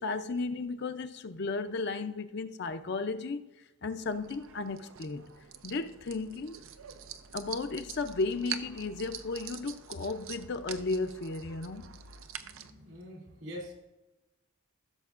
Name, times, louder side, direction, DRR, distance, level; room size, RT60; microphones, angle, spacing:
voice 1, 0.0-3.4 3.8-5.2 5.6-6.6 7.3-11.9, left 3 dB, 55° left, 0.5 m, -34 dB
sound 1, 4.0-12.7, right 9 dB, 85° right, 0.6 m, -45 dB
voice 2, 12.3-13.7, equal, 70° right, 3.0 m, -45 dB
15.5 x 6.9 x 2.5 m
head